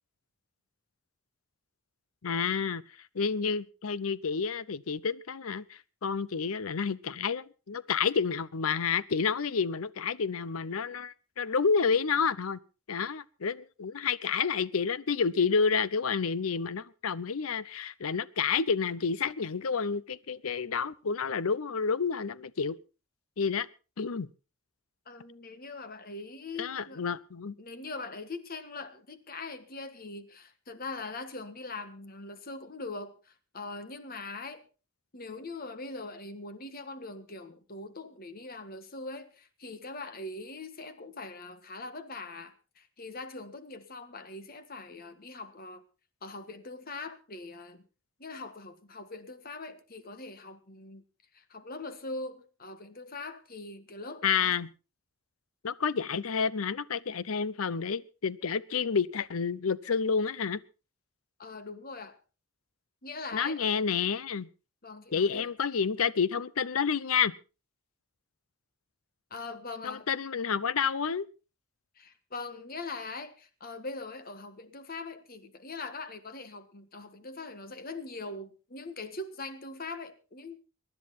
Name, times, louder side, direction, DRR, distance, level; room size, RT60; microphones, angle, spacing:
voice 1, 2.2-2.8 3.1-12.6 12.9-22.8 23.4-23.7 24.0-24.3 26.6-27.5 54.2-54.7 55.6-60.6 63.3-64.5 65.1-67.3 69.8-71.3, left 6 dB, 85° left, 0.7 m, -29 dB
voice 2, 25.0-27.0 27.6-34.6 35.1-45.8 46.2-47.8 48.2-51.0 51.3-54.5 61.4-62.2 63.0-63.7 64.8-65.5 69.3-70.1 71.9-80.6, left 3 dB, 45° left, 1.6 m, -42 dB
23.0 x 11.0 x 4.1 m
head